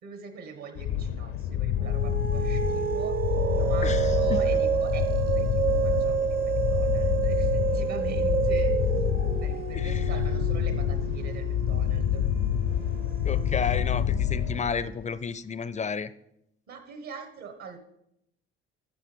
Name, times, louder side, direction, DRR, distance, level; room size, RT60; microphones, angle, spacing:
voice 1, 0.0-3.2 3.5-8.8 9.4-12.2 16.7-17.8, right 5 dB, 65° right, 7 dB, 1.5 m, -42 dB
sound 1, 0.8-15.0, left 10 dB, 65° left, 0.6 m, -27 dB
sound 2, 1.8-14.6, right 9 dB, 30° right, 0.6 m, -29 dB
voice 2, 3.8-4.4 9.7-10.1 13.2-16.1, left 6 dB, 25° left, 16 dB, 0.4 m, -32 dB
13.0 x 5.3 x 3.5 m, 0.79 s
hypercardioid pair, 55°, 30 cm